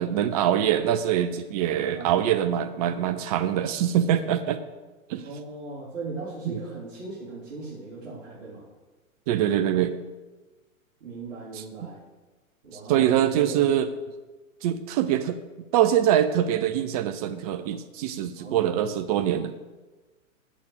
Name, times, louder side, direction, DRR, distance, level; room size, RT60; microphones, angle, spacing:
voice 1, 0.0-4.6 5.1-5.2 6.5-6.6 9.3-9.9 12.9-13.9 14.6-15.4 15.7-19.5, right 10 dB, 30° right, 11 dB, 0.5 m, -24 dB
voice 2, 5.1-8.7 11.0-12.0 12.6-13.6 18.4-18.9, right 3 dB, 55° right, -7 dB, 3.8 m, -38 dB
8.5 x 8.4 x 8.3 m, 1.2 s
figure-of-eight pair, 110°, 42 cm